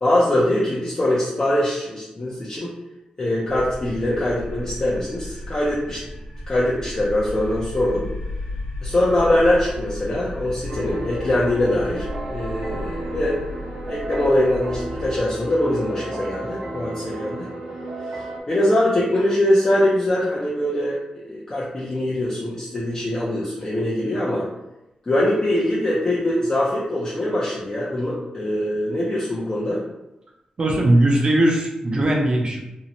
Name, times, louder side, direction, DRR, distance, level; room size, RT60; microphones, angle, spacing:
voice 1, 0.0-2.7 3.2-6.0 6.5-8.1 8.8-13.4 13.9-17.5 18.1-24.5 25.1-29.8, left 1 dB, 30° left, -8 dB, 0.5 m, -22 dB
sound 1, 3.5-15.2, left 1 dB, 75° left, 0.7 m, -34 dB
sound 2, 10.7-18.4, right 1 dB, 85° right, 0.6 m, -33 dB
voice 2, 30.6-32.6, right 1 dB, 40° right, 0 dB, 0.5 m, -19 dB
2.6 x 2.1 x 2.8 m, 0.93 s
wide cardioid pair, 140°, 2 cm